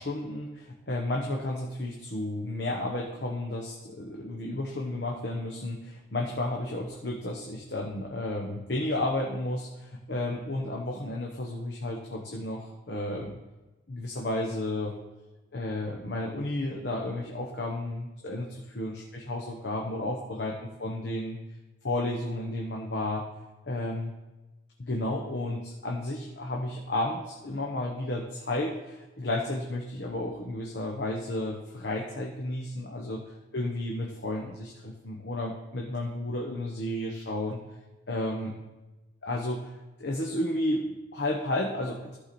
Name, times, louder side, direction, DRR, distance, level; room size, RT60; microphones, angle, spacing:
voice 1, 0.0-13.4 13.9-14.9 15.5-21.4 21.8-23.2 23.7-24.1 24.8-33.2 33.5-37.6 38.1-38.5 39.2-39.7 40.0-42.2, left 1 dB, 75° left, -1 dB, 1.2 m, -32 dB
14.5 x 4.9 x 4.4 m, 1.1 s
head